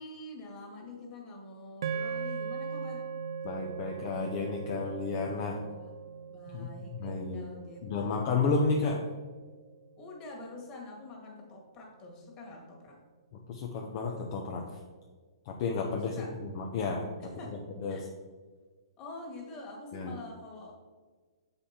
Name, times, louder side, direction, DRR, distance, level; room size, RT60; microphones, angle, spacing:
voice 1, 0.0-3.1 5.7-6.0 6.3-8.1 10.0-13.0 16.0-16.4 17.2-18.0 19.0-20.7, left 2 dB, 25° left, -1 dB, 2.0 m, -46 dB
sound 1, 1.8-10.2, right 6 dB, 70° right, 0.5 m, -40 dB
voice 2, 3.4-5.6 6.5-7.5 7.8-9.0 13.5-14.6 15.5-17.3 17.8-18.0 19.9-20.1, left 4 dB, 40° left, 0 dB, 0.8 m, -32 dB
7.1 x 5.3 x 4.3 m, 1.4 s
hypercardioid pair, 150°, 3 cm